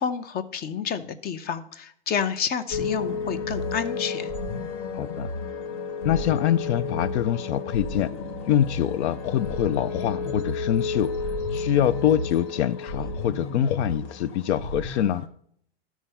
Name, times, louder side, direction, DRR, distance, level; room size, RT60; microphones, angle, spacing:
voice 1, 0.0-4.3, left 7 dB, 30° left, 0.8 m, -29 dB
sound 1, 2.7-15.3, left 3 dB, 50° left, 1.4 m, -32 dB
voice 2, 4.9-5.3 6.0-8.1 8.5-11.1 11.5-15.3, left 10 dB, 80° left, 0.5 m, -24 dB
12.5 x 4.6 x 5.6 m
hypercardioid pair, 125°, 33 cm